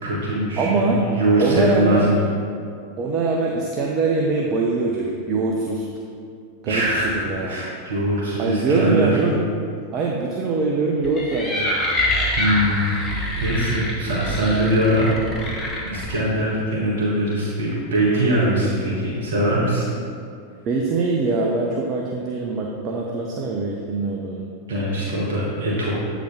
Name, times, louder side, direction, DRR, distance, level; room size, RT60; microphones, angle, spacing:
voice 1, 0.0-2.2 6.6-7.2 7.5-9.2 12.3-12.8 13.1-15.1 15.8-19.9 24.7-25.9, right 1 dB, 60° right, -6 dB, 1.5 m, -22 dB
voice 2, 0.6-1.0 1.4-2.1 3.0-5.9 6.6-7.7 8.4-9.4 9.9-11.7 20.7-24.5, right 3 dB, 35° right, -1 dB, 0.6 m, -23 dB
sound 1, 11.0-16.2, left 1 dB, 20° left, 1.1 m, -25 dB
8.2 x 4.1 x 4.2 m, 2.4 s
figure-of-eight pair, 90°, 0 cm